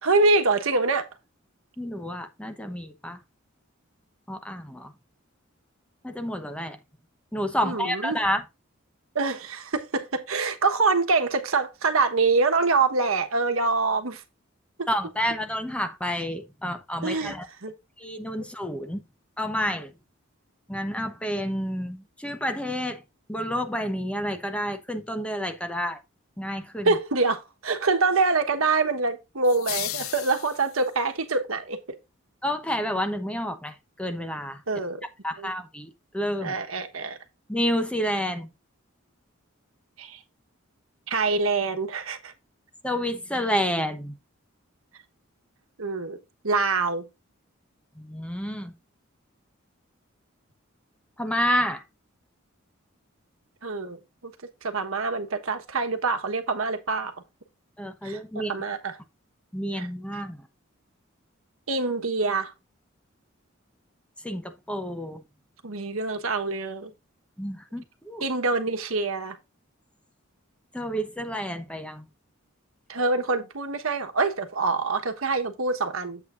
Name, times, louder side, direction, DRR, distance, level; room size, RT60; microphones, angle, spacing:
voice 1, 0.0-1.1 7.6-8.2 9.1-14.2 14.8-14.9 17.0-17.3 17.6-17.7 26.8-31.8 34.7-35.0 35.4-35.5 36.4-37.2 40.0-40.2 41.1-42.3 45.8-46.2 46.4-47.1 53.6-54.3 54.6-57.2 58.0-59.0 59.7-59.9 61.7-62.5 65.6-66.9 68.2-69.4 72.9-76.2, right 3 dB, 90° right, 1.2 m, -25 dB
voice 2, 1.8-3.2 4.3-4.9 6.0-6.8 7.3-8.4 14.9-17.5 18.0-19.0 19.4-19.9 20.7-23.0 23.3-26.0 26.4-27.0 32.4-34.6 35.2-36.6 37.5-38.5 42.8-44.2 48.0-48.7 51.2-51.8 57.8-58.5 59.5-60.4 64.2-65.2 67.4-68.2 70.7-72.0, equal, 5° left, 0.9 m, -29 dB
sound 1, 29.4-31.0, left 14 dB, 85° left, 0.5 m, -34 dB
8.2 x 7.9 x 2.5 m
head